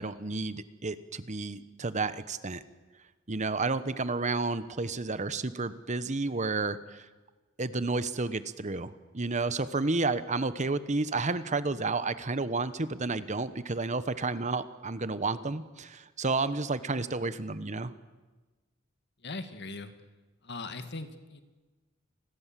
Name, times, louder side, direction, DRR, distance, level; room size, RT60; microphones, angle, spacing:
voice 1, 0.0-2.6 3.3-7.0 7.6-17.9, right 3 dB, 35° right, 14 dB, 1.1 m, -31 dB
voice 2, 19.2-19.9 20.4-21.4, left 3 dB, 55° left, 9 dB, 2.1 m, -39 dB
29.5 x 21.0 x 7.6 m, 1.2 s
head